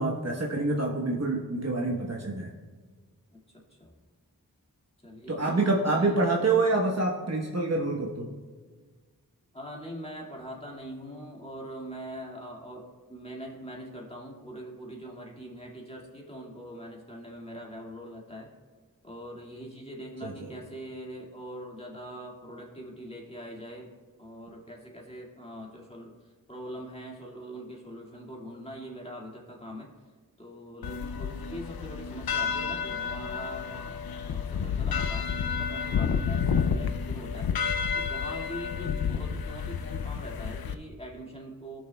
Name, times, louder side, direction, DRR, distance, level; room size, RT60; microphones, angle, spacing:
voice 1, 0.0-2.6 5.3-8.3 20.2-20.5, right 2 dB, 45° right, -2 dB, 1.1 m, -27 dB
voice 2, 3.3-4.0 5.0-6.2 9.5-18.5 19.0-23.9 24.2-29.9 30.4-33.9 34.2-37.5 37.9-41.8, equal, 15° left, -3 dB, 2.0 m, -42 dB
sound 1, 30.8-40.7, left 6 dB, 75° left, 0.5 m, -30 dB
17.0 x 6.2 x 2.3 m, 1.4 s
cardioid pair, 45°, 36 cm